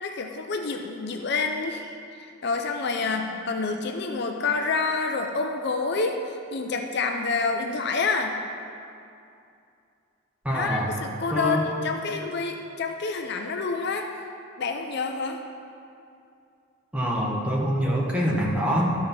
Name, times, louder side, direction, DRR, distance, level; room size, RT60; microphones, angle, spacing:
voice 1, 0.0-6.2 6.5-8.4 10.5-14.1 14.6-15.4, left 4 dB, 50° left, 4 dB, 0.6 m, -28 dB
voice 2, 10.4-10.9 11.3-11.6 16.9-18.9, equal, 5° right, -3 dB, 1.2 m, -25 dB
12.0 x 5.4 x 5.8 m, 2.5 s
head